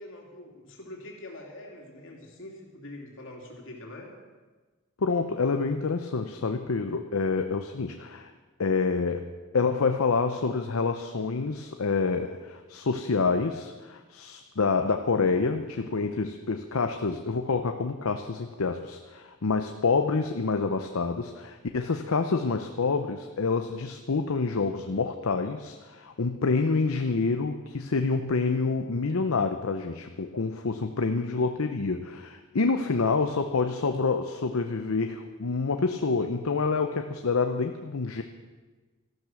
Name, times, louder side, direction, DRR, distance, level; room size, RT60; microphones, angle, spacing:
voice 1, 0.0-4.1 32.8-33.2, left 1 dB, 65° left, 0 dB, 3.0 m, -44 dB
voice 2, 5.0-8.3 8.6-9.2 9.5-38.2, left 4 dB, 80° left, 6 dB, 0.7 m, -27 dB
13.5 x 12.0 x 6.2 m, 1.3 s
head